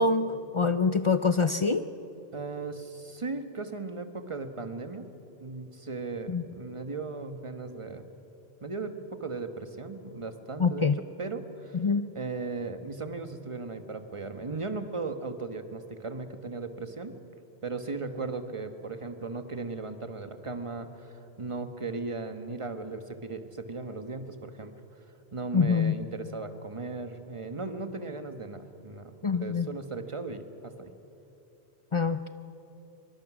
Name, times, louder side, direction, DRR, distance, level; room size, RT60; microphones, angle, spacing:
voice 1, 0.0-1.8 6.3-6.4 10.6-11.0 11.7-12.1 25.5-25.9 29.2-29.7 31.9-32.3, left 4 dB, 40° left, 10 dB, 0.5 m, -25 dB
voice 2, 2.3-5.1 5.4-8.0 8.6-11.8 12.1-17.2 17.6-24.7 25.3-30.9, right 3 dB, 30° right, 8 dB, 1.2 m, -37 dB
23.5 x 23.0 x 6.1 m, 3.0 s
omnidirectional pair, 1.1 m